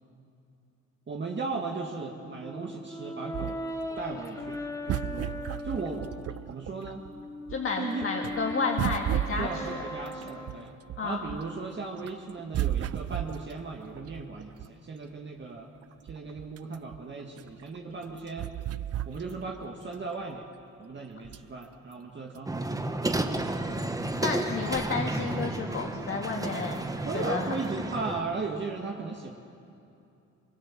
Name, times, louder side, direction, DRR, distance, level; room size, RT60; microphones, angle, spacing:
voice 1, 1.1-3.6 4.0-4.6 4.9-5.4 5.6-6.1 6.5-7.0 7.8-8.1 9.4-10.7 11.0-15.7 16.0-18.5 19.1-20.4 20.8-22.8 27.1-29.3, right 4 dB, 35° right, 1 dB, 2.0 m, -36 dB
Brass instrument, 2.4-6.4 6.9-11.0, left 1 dB, 10° left, 2.7 m, -39 dB
sound 1, 3.3-7.1 7.5-11.6 12.0-14.9 15.5-15.6 15.8-19.7 20.0-20.1 21.2-21.6 22.3-22.4, right 12 dB, 55° right, 0.5 m, -34 dB
voice 2, 7.5-9.8 11.0-11.3 24.2-26.8 27.1-27.5, left 4 dB, 45° left, 0 dB, 2.1 m, -31 dB
sound 2, 22.5-28.2, right 2 dB, 10° right, 1.4 m, -32 dB
24.5 x 23.0 x 7.5 m, 2.7 s
cardioid pair, 90°, 30 cm